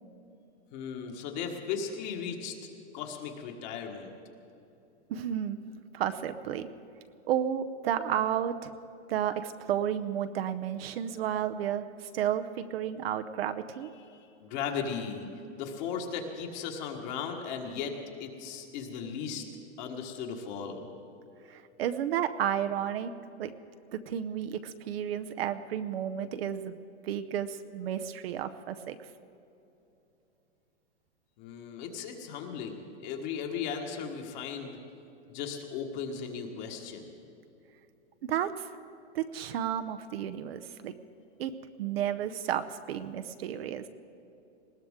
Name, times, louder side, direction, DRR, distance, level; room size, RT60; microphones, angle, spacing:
voice 1, 0.7-2.6 2.9-4.1 14.0-15.3 15.6-19.4 19.8-20.9 31.4-34.8 35.3-37.1, left 6 dB, 40° left, 2 dB, 1.6 m, -37 dB
voice 2, 5.1-5.6 5.9-6.7 7.3-8.7 9.1-13.9 21.5-23.1 23.4-23.5 23.9-26.8 27.0-29.0 38.2-38.7 39.1-40.9 41.4-41.5 41.8-43.8, right 10 dB, 55° right, 9 dB, 0.8 m, -32 dB
20.0 x 17.5 x 3.7 m, 2.9 s
supercardioid pair, 160°, 35 cm